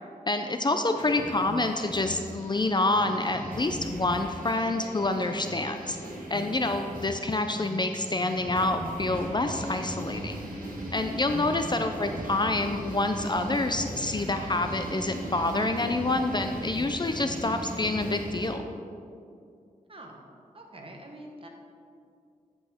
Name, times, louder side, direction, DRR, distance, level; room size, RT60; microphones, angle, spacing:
voice 1, 0.3-6.0 6.3-10.4 10.9-18.6, left 2 dB, 30° left, 6 dB, 0.4 m, -27 dB
sound 1, 1.0-18.5, right 1 dB, 75° right, 1.6 m, -38 dB
voice 2, 11.4-11.9 19.9-20.2 20.5-21.5, right 1 dB, 40° right, 1 dB, 1.2 m, -46 dB
10.5 x 5.4 x 3.6 m, 2.4 s
wide cardioid pair, 75°, 15 cm